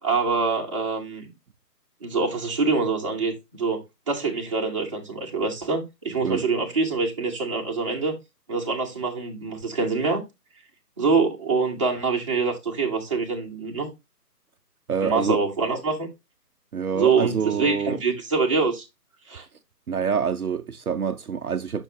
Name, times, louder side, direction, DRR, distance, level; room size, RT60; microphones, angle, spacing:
voice 1, 0.0-1.3 2.0-8.2 8.5-10.2 11.0-13.9 15.0-16.1 16.9-18.8 19.3-19.4, right 4 dB, 20° right, 1.1 m, -25 dB
voice 2, 14.9-15.4 16.7-18.0 19.9-21.8, right 6 dB, 65° right, 0.6 m, -26 dB
6.3 x 6.3 x 2.7 m
figure-of-eight pair, 155°, 49 cm